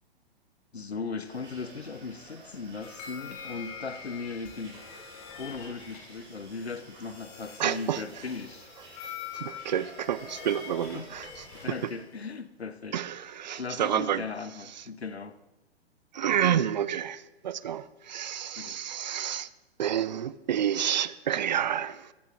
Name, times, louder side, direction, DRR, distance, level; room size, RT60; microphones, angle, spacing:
voice 1, 0.7-4.8 5.3-8.7 10.9-11.1 11.5-13.0 13.5-15.4 18.6-18.8, left 4 dB, 80° left, 0.9 m, -38 dB
sound 1, 1.2-11.9, right 2 dB, 15° right, 4.7 m, -51 dB
sound 2, 2.8-12.4, left 7 dB, 40° left, 2.3 m, -45 dB
voice 2, 7.6-8.0 9.0-11.9 12.9-14.2 14.8-14.9 16.1-19.5 19.8-22.1, right 10 dB, 45° right, 0.5 m, -29 dB
23.0 x 14.5 x 2.5 m
figure-of-eight pair, 115°, 32 cm